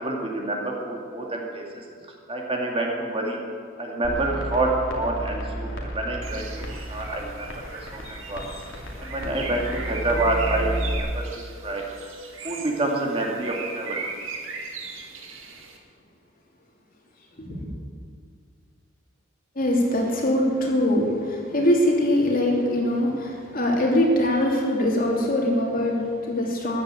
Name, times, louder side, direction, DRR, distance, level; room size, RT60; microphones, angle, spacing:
voice 1, 0.0-1.8 2.3-3.4 3.8-7.5 7.9-8.4 9.0-11.9 12.4-14.0, right 2 dB, 30° right, 0 dB, 2.3 m, -27 dB
sound 1, 4.0-11.0, equal, 75° left, 2.7 m, -33 dB
Bird, 6.2-15.8, right 4 dB, 85° right, 2.2 m, -38 dB
voice 2, 19.5-26.8, left 1 dB, 45° left, -1 dB, 3.0 m, -23 dB
14.5 x 11.0 x 8.4 m, 2.2 s
head